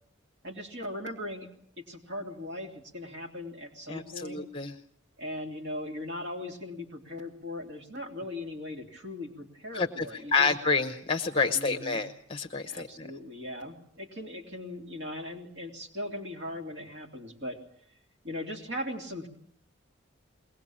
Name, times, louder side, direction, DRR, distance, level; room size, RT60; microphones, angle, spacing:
voice 1, 0.4-1.5 1.8-4.4 5.2-10.5 11.5-12.0 12.7-17.6 18.2-19.3, left 1 dB, 60° right, 4 dB, 2.9 m, -39 dB
voice 2, 3.9-4.7 9.7-10.0 10.3-13.1, left 4 dB, 25° left, 7 dB, 0.9 m, -28 dB
22.5 x 19.0 x 8.6 m, 0.62 s
head